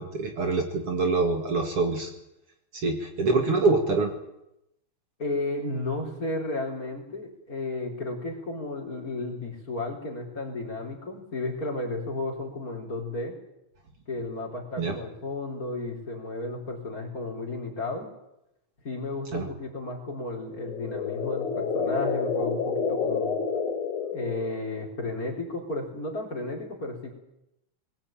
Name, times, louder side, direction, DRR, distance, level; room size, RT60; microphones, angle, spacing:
voice 1, 0.0-2.1 2.7-4.1 14.8-14.9 19.3-19.5, right 3 dB, 55° right, 3 dB, 2.9 m, -25 dB
voice 2, 5.2-13.3 14.1-18.1 18.8-23.4 24.1-27.1, left 2 dB, 30° left, 0 dB, 4.3 m, -33 dB
sound 1, 20.4-24.8, left 5 dB, 85° left, 3.7 m, -29 dB
21.5 x 16.0 x 8.9 m, 0.87 s
omnidirectional pair, 3.4 m